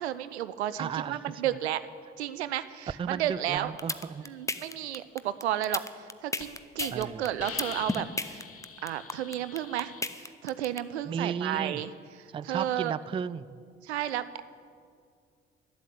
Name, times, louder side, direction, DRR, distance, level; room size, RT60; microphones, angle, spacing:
voice 1, 0.0-1.8 2.2-3.7 4.2-8.4 8.8-11.9 12.2-12.9 13.8-14.4, right 12 dB, 80° right, 14 dB, 0.5 m, -32 dB
voice 2, 0.8-1.2 3.0-4.2 6.9-7.3 11.1-11.8 12.3-13.6, right 7 dB, 15° right, 19 dB, 0.3 m, -34 dB
sound 1, 3.6-10.8, left 2 dB, 10° left, 0.7 m, -33 dB
Hiss, 5.8-6.0 6.4-6.5 6.8-7.0 7.4-10.0, left 6 dB, 45° left, 1.3 m, -42 dB
12.0 x 8.4 x 9.8 m, 2.2 s
figure-of-eight pair, 45°, 33 cm